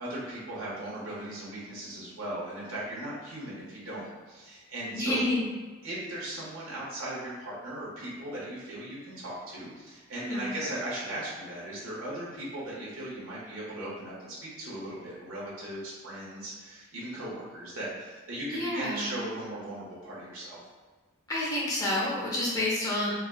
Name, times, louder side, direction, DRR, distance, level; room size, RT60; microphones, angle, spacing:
voice 1, 0.0-5.2 5.8-20.6, right 1 dB, 85° right, -7 dB, 1.3 m, -38 dB
voice 2, 4.9-5.4 10.2-10.5 18.5-19.2 21.3-23.1, left 1 dB, 15° left, -6 dB, 0.7 m, -29 dB
4.6 x 2.3 x 2.2 m, 1.4 s
head